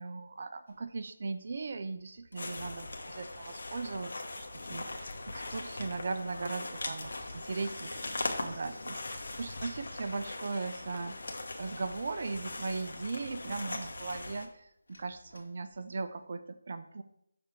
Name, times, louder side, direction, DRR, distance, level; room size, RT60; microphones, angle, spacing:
voice 1, 0.0-17.0, right 4 dB, 50° right, 10 dB, 0.4 m, -38 dB
sound 1, 0.7-1.1 1.6-3.4 3.6-3.7 4.0-4.1 4.3-5.7 6.2-8.0 8.6-8.7 8.9-9.0 9.2-11.3 11.7-16.2, left 1 dB, 80° left, 1.8 m, -56 dB
sound 2, 2.4-14.5, left 2 dB, 60° left, 1.0 m, -40 dB
6.4 x 3.4 x 4.5 m, 0.77 s
figure-of-eight pair, 160°, 0 cm